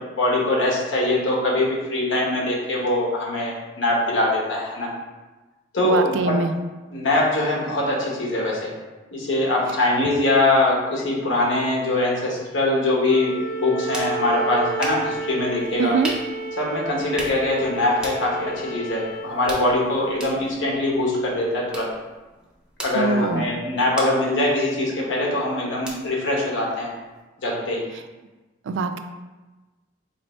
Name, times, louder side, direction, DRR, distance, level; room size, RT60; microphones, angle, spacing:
voice 1, 0.0-4.9 5.7-6.4 6.9-8.7 9.1-15.9 16.6-21.9 22.8-26.9 27.4-27.8, left 2 dB, 75° left, -3 dB, 1.0 m, -22 dB
voice 2, 5.8-6.5 15.8-16.1 22.9-23.4 28.7-29.0, right 4 dB, 75° right, 8 dB, 0.3 m, -23 dB
Wind instrument woodwind instrument, 13.0-19.4, right 3 dB, 45° left, 0.4 m, -32 dB
sound 1, 13.5-27.2, right 1 dB, 5° right, 0.6 m, -39 dB
4.0 x 2.9 x 3.0 m, 1.2 s
head